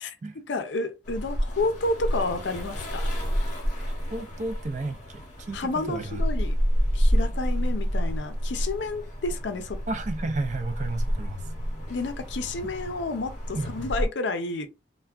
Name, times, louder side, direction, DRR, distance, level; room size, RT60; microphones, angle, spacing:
voice 1, 0.0-3.1 5.5-6.5 6.9-9.8 11.9-14.7, left 2 dB, 75° left, 0.5 m, -30 dB
sound 1, 1.0-14.1, equal, 40° left, 0.9 m, -29 dB
voice 2, 4.1-5.2 5.5-6.2 9.9-11.4 13.5-13.9, right 2 dB, 40° right, 0.4 m, -32 dB
3.3 x 2.2 x 2.3 m
head